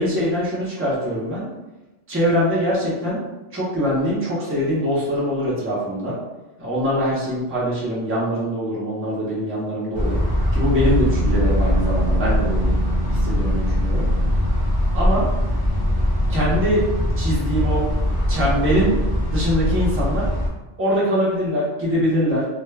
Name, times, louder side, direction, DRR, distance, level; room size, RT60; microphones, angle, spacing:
voice 1, 0.0-1.5 2.1-3.2 3.5-6.2 6.6-10.2 10.5-12.7 13.1-14.1 14.9-15.3 16.3-16.9 17.2-17.8 18.3-19.0 19.3-20.3 20.8-22.5, equal, 15° right, -7 dB, 0.6 m, -23 dB
sound 1, 9.9-20.5, equal, 35° left, 0.3 m, -21 dB
2.2 x 2.2 x 3.2 m, 1.1 s
omnidirectional pair, 1.2 m